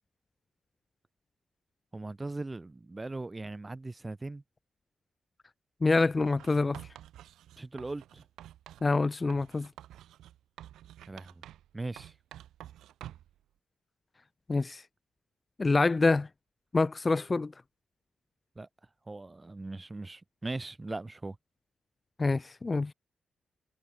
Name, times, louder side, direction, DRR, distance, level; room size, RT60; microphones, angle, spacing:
voice 1, 1.9-4.4 7.6-8.2 11.1-11.4 11.7-12.1 18.6-18.7 19.1-21.4, right 2 dB, 25° right, 5.3 m, -39 dB
voice 2, 5.8-6.8 8.8-9.7 14.5-14.8 15.6-16.3 16.7-17.5 22.2-22.9, left 3 dB, 30° left, 1.0 m, -26 dB
Writing, 6.2-8.9 9.3-11.7 12.0-13.4, right 12 dB, 90° right, 1.4 m, -49 dB
cardioid pair, 60°, 0 cm